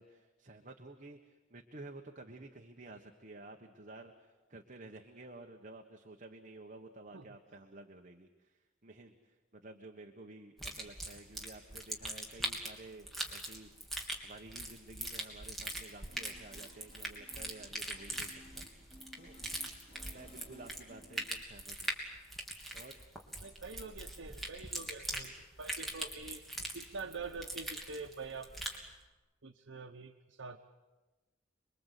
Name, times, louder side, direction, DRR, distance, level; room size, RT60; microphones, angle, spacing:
voice 1, 0.0-13.7 14.2-19.4 20.1-21.9 22.7-23.0, right 2 dB, 40° right, 3 dB, 1.4 m, -52 dB
sound 1, 10.6-28.8, right 1 dB, ahead, 3.3 m, -42 dB
sound 2, 16.1-21.2, left 1 dB, 30° left, 3.9 m, -58 dB
voice 2, 23.4-26.4 26.7-28.5 29.4-30.6, right 4 dB, 80° right, 3 dB, 1.1 m, -45 dB
27.0 x 22.5 x 8.4 m, 1.2 s
head